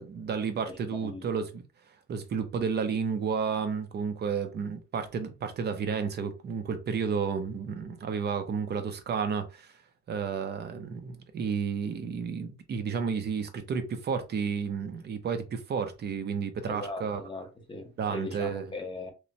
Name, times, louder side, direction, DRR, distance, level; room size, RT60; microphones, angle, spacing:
voice 1, 0.0-1.6 2.1-9.7 10.1-17.2 18.0-18.6, right 6 dB, 35° right, 0.4 m, -31 dB
voice 2, 0.7-1.3 16.7-19.1, left 2 dB, 15° left, 0.5 m, -39 dB
3.0 x 2.1 x 2.6 m
cardioid pair, 175°, 31 cm